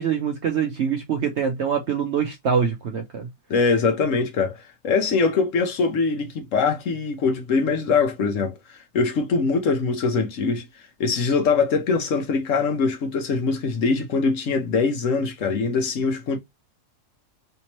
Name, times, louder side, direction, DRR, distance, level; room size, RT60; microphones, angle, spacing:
voice 1, 0.0-3.3, right 7 dB, 65° right, 0.7 m, -24 dB
voice 2, 3.5-4.6 4.8-8.5 8.9-10.6 11.0-16.4, left 4 dB, 60° left, 1.0 m, -22 dB
3.4 x 2.8 x 2.9 m
omnidirectional pair, 1.8 m